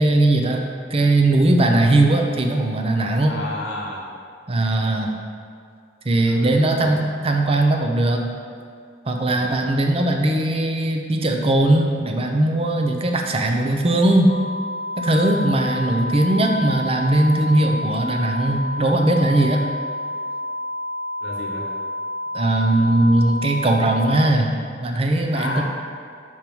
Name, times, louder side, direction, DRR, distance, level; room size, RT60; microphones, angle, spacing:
voice 1, 0.0-3.3 4.5-5.1 6.0-8.3 9.1-14.3 15.0-19.7 22.3-25.6, right 1 dB, 30° right, 3 dB, 0.6 m, -19 dB
voice 2, 3.3-4.1 6.3-7.1 9.3-9.7 21.2-21.7 25.3-25.6, left 2 dB, 85° left, -2 dB, 1.2 m, -32 dB
sound 1, 14.3-24.3, left 1 dB, 45° left, 0.4 m, -29 dB
4.6 x 4.5 x 5.4 m, 2.3 s
head